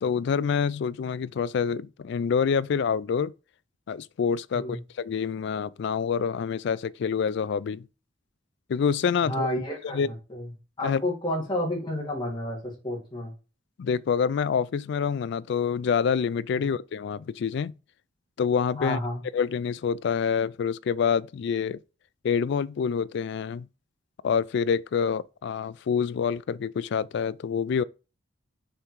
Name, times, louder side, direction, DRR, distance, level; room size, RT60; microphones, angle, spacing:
voice 1, 0.0-3.3 3.9-7.9 8.7-9.5 9.9-10.1 10.8-11.0 13.8-17.7 18.4-19.0 19.3-21.8 22.2-23.7 24.2-27.8, left 6 dB, 60° left, 0.3 m, -27 dB
voice 2, 9.2-10.5 10.8-13.3 18.8-19.2, left 1 dB, 25° left, 2.2 m, -30 dB
6.7 x 3.6 x 4.5 m
head